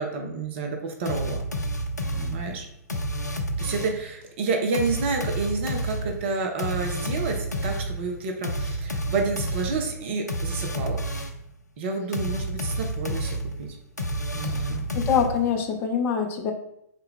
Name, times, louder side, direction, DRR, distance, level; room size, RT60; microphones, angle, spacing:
voice 1, 0.0-1.4 2.1-2.7 3.6-11.0 11.8-13.7 14.3-14.9, right 4 dB, 45° right, 3 dB, 0.5 m, -29 dB
sound 1, 1.1-4.1 4.7-11.5 12.1-15.6, equal, 85° left, 0.4 m, -30 dB
voice 2, 14.4-16.5, left 7 dB, 25° left, 4 dB, 0.5 m, -25 dB
3.9 x 2.2 x 3.6 m, 0.77 s
figure-of-eight pair, 105°, 9 cm